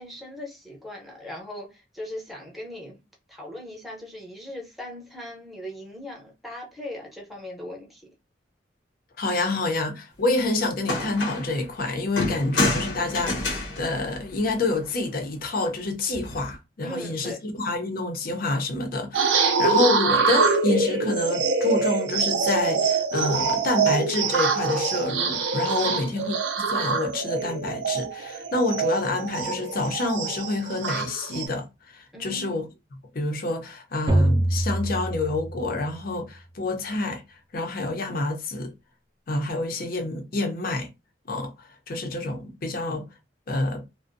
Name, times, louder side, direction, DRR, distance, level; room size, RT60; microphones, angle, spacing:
voice 1, 0.0-3.0 3.3-8.1 16.8-17.4 25.8-26.3 32.1-32.7, left 1 dB, ahead, 0.7 m, -39 dB
voice 2, 9.2-26.4 26.7-32.6 33.1-37.2 37.5-38.7 39.3-40.9 41.3-41.5 41.9-43.1 43.5-43.8, left 2 dB, 55° left, 0.6 m, -27 dB
sound 1, 10.4-10.5 10.8-11.6 12.2-14.9 16.1-16.6, left 2 dB, 90° left, 0.8 m, -29 dB
sound 2, 19.1-31.5, right 4 dB, 90° right, 0.4 m, -25 dB
sound 3, 34.1-36.0, right 1 dB, 25° right, 0.4 m, -24 dB
2.5 x 2.0 x 2.5 m
head